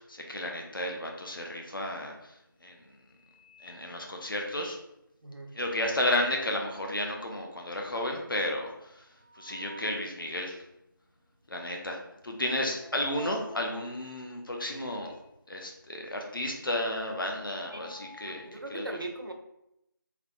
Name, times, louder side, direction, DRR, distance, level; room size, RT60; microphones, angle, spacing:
voice 1, 0.0-2.3 2.6-2.8 3.6-4.8 5.5-9.1 9.4-10.6 11.5-15.1 15.5-18.9, left 1 dB, 70° left, 1 dB, 0.7 m, -33 dB
sound 1, 1.9-2.3 2.7-4.8 5.7-6.7 7.1-7.2 7.4-7.5 7.9-10.0 10.5-10.6 11.4-11.7 12.0-15.3 15.6-18.5, equal, 25° right, 0.4 m, -51 dB
voice 2, 5.2-5.6 17.7-19.3, right 2 dB, 75° right, 4 dB, 0.6 m, -40 dB
3.4 x 2.9 x 2.4 m, 0.83 s
figure-of-eight pair, 170°, 12 cm